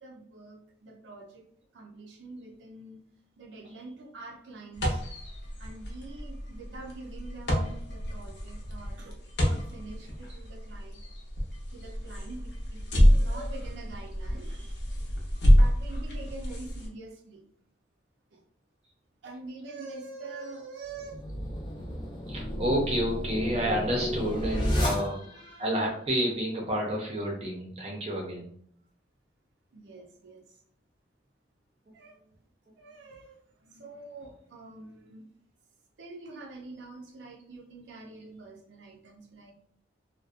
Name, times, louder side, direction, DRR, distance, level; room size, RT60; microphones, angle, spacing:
voice 1, 0.0-1.5 1.7-3.0 3.4-5.0 5.6-11.0 11.7-14.9 15.5-17.4 18.3-18.4 19.2-21.3 25.1-25.7 29.7-30.5 31.9-32.2 32.8-35.3 36.0-39.5, right 3 dB, 80° right, 1 dB, 0.5 m, -45 dB
sound 1, 4.7-16.9, equal, 70° left, 0.6 m, -27 dB
sound 2, 20.9-25.5, equal, 25° left, 0.4 m, -32 dB
voice 2, 22.3-25.2 25.6-28.5, equal, 35° right, -1 dB, 0.5 m, -29 dB
2.6 x 2.1 x 2.4 m, 0.64 s
head